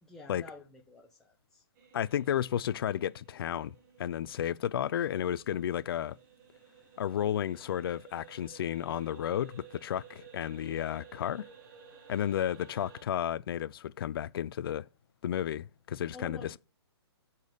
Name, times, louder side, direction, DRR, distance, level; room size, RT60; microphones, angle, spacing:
voice 1, 0.0-1.6 16.1-16.6, left 2 dB, 5° left, 0.9 m, -49 dB
sound 1, 1.8-13.0, right 8 dB, 40° right, 2.1 m, -56 dB
voice 2, 1.9-3.7 4.0-6.2 7.0-11.5 12.1-14.8 15.2-16.6, left 10 dB, 55° left, 0.4 m, -32 dB
8.4 x 4.1 x 6.7 m
hypercardioid pair, 155°, 15 cm